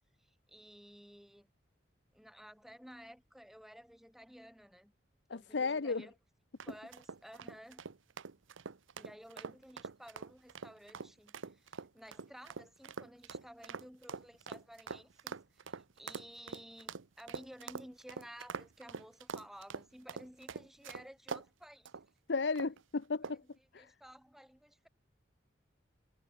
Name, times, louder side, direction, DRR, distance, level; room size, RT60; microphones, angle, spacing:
voice 1, 0.2-1.5 2.1-4.9 5.3-6.1 6.6-7.8 9.0-21.9 23.8-24.9, equal, ahead, 3.1 m, -54 dB
voice 2, 5.3-6.1 22.3-23.4 23.7-23.9, left 4 dB, 65° left, 0.7 m, -34 dB
sound 1, 6.6-21.5 21.9-22.0 22.6-22.8 23.2-23.5, right 5 dB, 90° right, 0.8 m, -44 dB
head